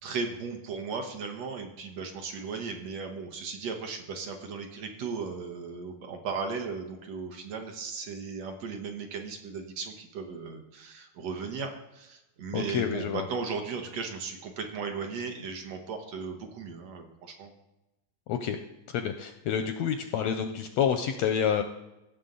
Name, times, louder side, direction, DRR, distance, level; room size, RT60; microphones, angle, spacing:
voice 1, 0.0-17.5, right 5 dB, 65° right, 4 dB, 2.0 m, -36 dB
voice 2, 12.5-13.2 18.3-18.6 18.9-21.6, left 8 dB, 80° left, 7 dB, 1.6 m, -28 dB
16.5 x 7.2 x 3.9 m, 0.97 s
omnidirectional pair, 3.5 m